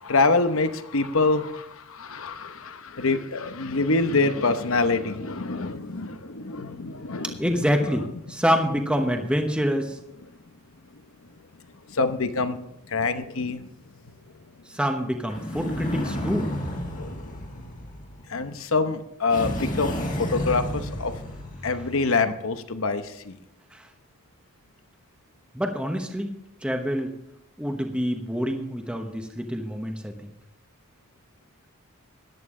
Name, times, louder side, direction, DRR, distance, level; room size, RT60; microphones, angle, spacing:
voice 1, 0.0-7.3 11.9-12.6 12.9-13.7 16.9-17.3 18.3-21.1 21.6-23.4, left 3 dB, 65° left, 9 dB, 0.9 m, -25 dB
voice 2, 7.4-10.0 14.7-16.5 23.7-23.9 25.5-26.3 26.6-27.1 27.6-30.1, equal, 5° right, 4 dB, 1.0 m, -26 dB
sound 1, 15.3-18.4 19.3-22.0, equal, 35° left, 1.8 m, -31 dB
14.5 x 10.5 x 3.7 m, 0.80 s
head